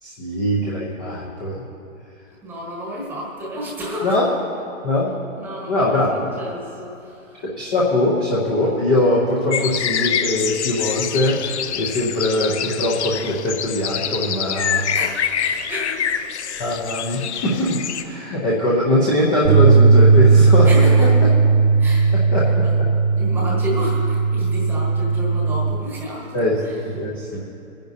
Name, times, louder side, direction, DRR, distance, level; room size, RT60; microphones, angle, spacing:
voice 1, 0.0-1.6 4.0-4.3 4.8-5.1 5.7-6.3 7.4-14.9 16.6-21.1 22.3-22.9 26.3-27.4, left 1 dB, 10° left, -5 dB, 0.7 m, -21 dB
voice 2, 2.4-4.2 5.4-7.4 14.7-16.2 20.6-21.3 21.8-22.8 23.1-26.3 26.6-26.8 27.1-27.4, equal, 5° right, -3 dB, 1.2 m, -31 dB
sound 1, 9.5-18.0, left 8 dB, 55° left, 0.6 m, -26 dB
Bass guitar, 19.4-25.7, right 4 dB, 80° right, 1.7 m, -15 dB
24.5 x 10.5 x 2.7 m, 2.6 s
hypercardioid pair, 160°, 42 cm